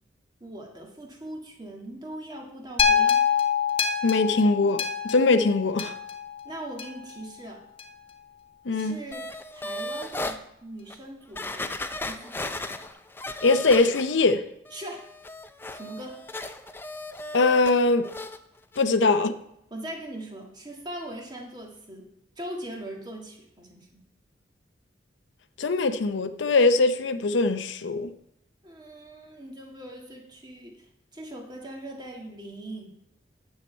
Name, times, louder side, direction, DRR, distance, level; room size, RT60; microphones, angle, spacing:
voice 1, 0.4-3.3 6.4-7.6 8.7-11.8 12.1-12.9 14.7-15.1 15.7-16.2 19.0-19.2 19.7-24.0 28.6-32.9, right 1 dB, 25° right, 1.7 m, -41 dB
sound 1, 2.8-7.1 7.8-7.9, left 7 dB, 30° left, 0.9 m, -25 dB
voice 2, 4.0-5.9 8.7-9.0 13.4-14.4 17.3-18.1 18.8-19.3 25.6-28.1, left 3 dB, 85° left, 0.6 m, -22 dB
sound 2, 9.1-10.4 10.9-11.0 11.4-14.3 14.7-17.7 18.0-18.4 18.7-18.8, left 1 dB, 10° left, 0.4 m, -36 dB
9.2 x 7.5 x 4.4 m
head